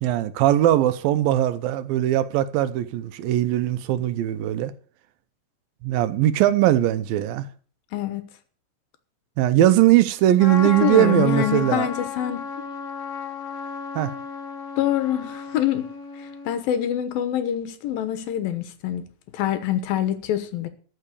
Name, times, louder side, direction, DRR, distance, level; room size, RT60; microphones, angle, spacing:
voice 1, 0.0-4.7 5.8-7.5 9.4-11.9 14.0-14.1, right 13 dB, 85° right, 2.6 m, -20 dB
voice 2, 7.9-8.2 10.6-12.7 14.8-15.9 16.5-19.0 19.3-20.7, left 11 dB, 85° left, 3.0 m, -25 dB
Trumpet, 10.4-16.6, left 5 dB, 50° left, 2.4 m, -33 dB
13.5 x 5.7 x 8.3 m
omnidirectional pair, 4.0 m